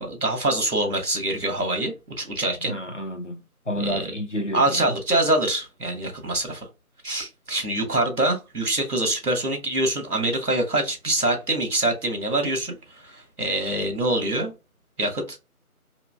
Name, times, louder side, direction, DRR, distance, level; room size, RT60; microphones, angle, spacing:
voice 1, 0.0-2.7 3.8-4.1 4.5-6.7 7.0-14.5 15.0-15.4, right 1 dB, 80° right, 1.7 m, -25 dB
voice 2, 2.6-5.0, equal, 50° left, 0.7 m, -30 dB
3.8 x 3.0 x 2.2 m
figure-of-eight pair, 180°, 45 cm